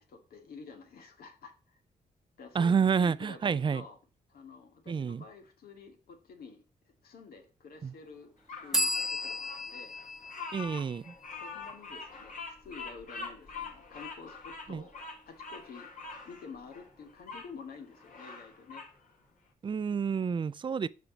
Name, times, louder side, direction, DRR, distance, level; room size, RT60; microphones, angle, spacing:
voice 1, 0.0-1.8 2.4-4.0 4.3-6.6 7.0-10.0 11.4-15.9 16.3-18.8, left 5 dB, 80° left, 2.1 m, -49 dB
voice 2, 2.5-3.8 4.9-5.2 7.8-7.9 10.5-11.1 14.7-14.8 19.6-20.9, right 6 dB, 30° right, 0.4 m, -29 dB
Bird vocalization bird call bird song, 8.5-17.5 17.9-18.9, left 4 dB, 60° left, 2.8 m, -44 dB
sound 1, 8.7-12.3, left 1 dB, 5° right, 1.0 m, -35 dB
7.1 x 5.2 x 6.9 m
cardioid pair, 110°, 15 cm